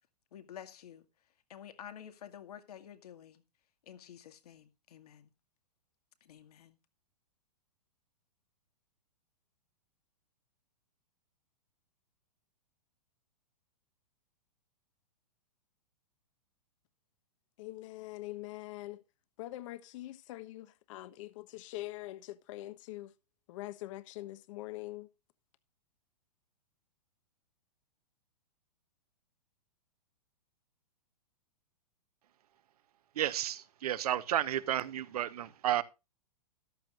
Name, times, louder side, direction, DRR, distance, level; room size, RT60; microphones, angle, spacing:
voice 1, 0.3-1.1 1.5-3.4 3.9-5.3 6.2-6.8, left 9 dB, 70° left, 2.1 m, -50 dB
voice 2, 17.6-19.0 19.4-23.1 23.5-25.1, left 17 dB, 50° left, 1.2 m, -43 dB
voice 3, 33.1-35.8, right 11 dB, 70° right, 1.2 m, -32 dB
14.0 x 12.0 x 2.5 m
hypercardioid pair, 125°, 20 cm